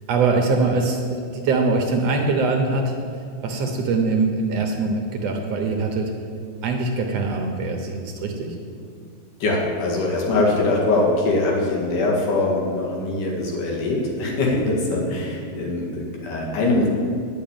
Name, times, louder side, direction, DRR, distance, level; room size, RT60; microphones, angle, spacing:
voice 1, 0.1-3.0 3.4-6.1 6.6-8.6, right 3 dB, 65° right, 3 dB, 1.8 m, -22 dB
voice 2, 9.4-16.9, left 2 dB, 85° left, -3 dB, 3.5 m, -22 dB
10.0 x 6.5 x 8.8 m, 2.4 s
omnidirectional pair, 3.5 m